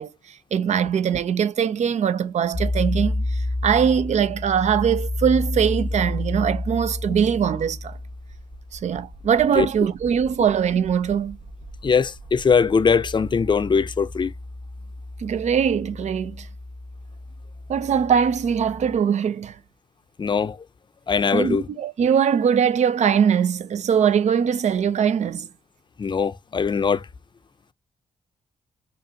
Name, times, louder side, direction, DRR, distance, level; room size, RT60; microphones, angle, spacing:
voice 1, 0.0-8.0 8.7-11.4 15.2-16.5 17.7-19.6 21.3-25.5, right 7 dB, 60° right, 0.6 m, -22 dB
sound 1, 2.5-19.0, left 1 dB, 40° right, 1.7 m, -32 dB
voice 2, 11.8-14.3 20.2-20.6 21.1-21.6 26.0-27.0, left 5 dB, 35° left, 0.6 m, -21 dB
5.4 x 2.5 x 2.8 m
cardioid pair, 65°, 13 cm